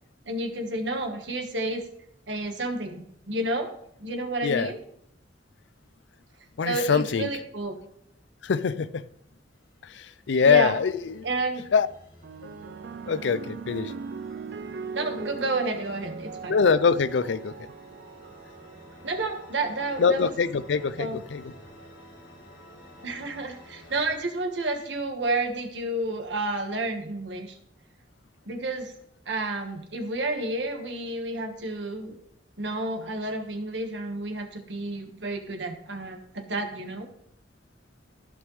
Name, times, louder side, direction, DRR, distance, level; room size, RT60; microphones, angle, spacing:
voice 1, 0.2-1.8 2.3-3.7 4.0-4.8 6.6-7.8 10.4-10.7 11.2-11.6 14.9-16.5 19.0-20.3 21.0-21.2 23.0-27.6 28.5-28.9 29.3-32.2 32.6-37.1, right 2 dB, 80° right, 1.4 m, -30 dB
voice 2, 6.6-7.3 8.4-9.0 10.0-11.3 11.7-11.9 13.1-13.9 16.5-17.5 20.0-21.4, left 5 dB, 80° left, 0.5 m, -23 dB
sound 1, 9.5-24.2, left 1 dB, 50° left, 2.3 m, -52 dB
sound 2, 12.2-20.8 21.7-22.1, right 5 dB, 60° right, 0.3 m, -40 dB
14.5 x 5.2 x 3.2 m
head